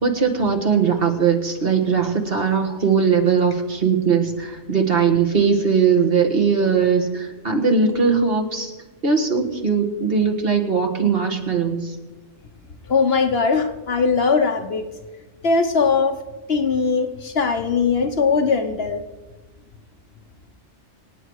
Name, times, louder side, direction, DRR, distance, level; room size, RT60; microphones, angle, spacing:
voice 1, 0.0-8.7 9.0-12.0, right 5 dB, 50° right, 4 dB, 1.8 m, -20 dB
voice 2, 12.9-14.9 15.4-16.2 16.5-19.0, left 5 dB, 55° left, 6 dB, 1.2 m, -20 dB
26.5 x 9.0 x 4.8 m, 1.2 s
omnidirectional pair, 1.2 m